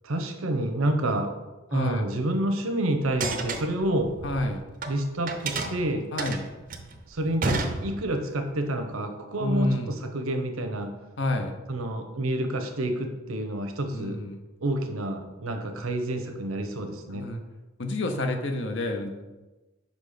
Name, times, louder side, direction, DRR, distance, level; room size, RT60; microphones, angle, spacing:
voice 1, 0.0-1.3 1.7-4.1 4.9-6.0 7.1-10.9 11.7-14.2 14.6-17.3, right 1 dB, 85° right, 6 dB, 0.8 m, -28 dB
voice 2, 1.7-2.1 4.2-4.6 6.1-6.4 9.4-9.9 11.2-11.5 13.9-14.4 17.1-17.4 17.8-19.1, left 1 dB, 60° left, 5 dB, 0.7 m, -28 dB
sound 1, 3.1-4.9 5.3-8.3, right 3 dB, 40° right, 0.5 m, -31 dB
5.3 x 4.2 x 5.0 m, 1.1 s
head